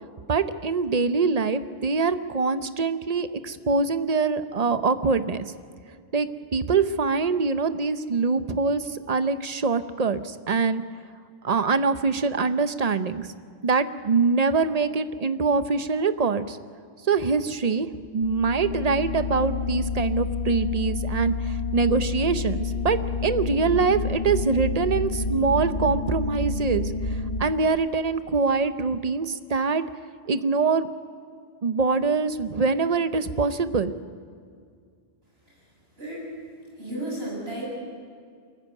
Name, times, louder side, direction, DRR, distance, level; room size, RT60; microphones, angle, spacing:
voice 1, 0.3-5.5 6.1-10.8 11.4-13.2 13.6-16.6 17.1-17.9 18.1-29.8 30.3-30.9 31.6-33.9, right 4 dB, 40° right, 11 dB, 0.8 m, -24 dB
sound 1, 18.2-27.4, left 4 dB, 50° left, 1.2 m, -29 dB
voice 2, 36.0-36.3 36.8-37.7, right 1 dB, 70° right, -3 dB, 7.6 m, -33 dB
23.0 x 14.5 x 9.3 m, 2.2 s
omnidirectional pair, 1.1 m